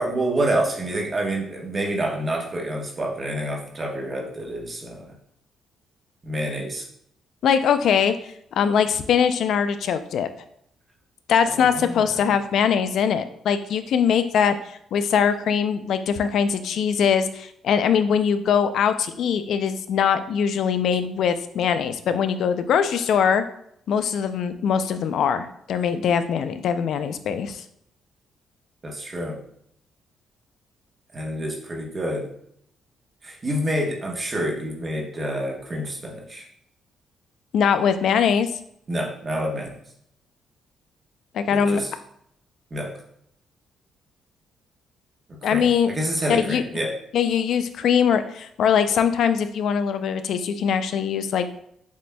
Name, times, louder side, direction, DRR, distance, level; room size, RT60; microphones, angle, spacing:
voice 1, 0.0-5.1 6.2-6.8 11.4-12.3 28.8-29.4 31.1-32.3 33.2-36.4 38.9-39.7 41.5-41.9 42.7-42.9 45.3-46.9, right 1 dB, 35° right, 0 dB, 1.1 m, -28 dB
voice 2, 7.4-8.1 8.6-10.3 11.3-14.6 14.9-23.4 23.9-27.6 37.5-38.5 41.3-41.8 45.4-45.9 46.3-46.6 47.1-51.6, left 7 dB, 70° left, 10 dB, 0.3 m, -22 dB
7.2 x 2.6 x 2.2 m, 0.72 s
cardioid pair, 90°, 0 cm